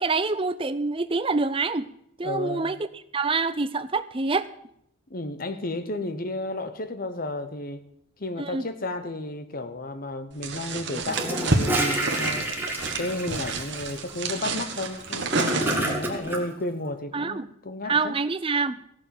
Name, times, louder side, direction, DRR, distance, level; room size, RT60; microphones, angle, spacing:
voice 1, 0.0-1.8 2.2-4.5 8.4-8.7 17.1-17.5 17.8-18.8, right 4 dB, 25° right, 13 dB, 0.6 m, -26 dB
voice 2, 2.2-2.7 5.1-7.8 8.2-12.5 13.0-18.1, left 2 dB, 45° left, 10 dB, 1.1 m, -32 dB
sound 1, 10.4-16.1, right 3 dB, 55° right, 1.5 m, -29 dB
Gurgling / Toilet flush, 11.1-16.4, right 1 dB, 10° right, 1.8 m, -29 dB
15.5 x 7.0 x 7.7 m, 0.73 s
head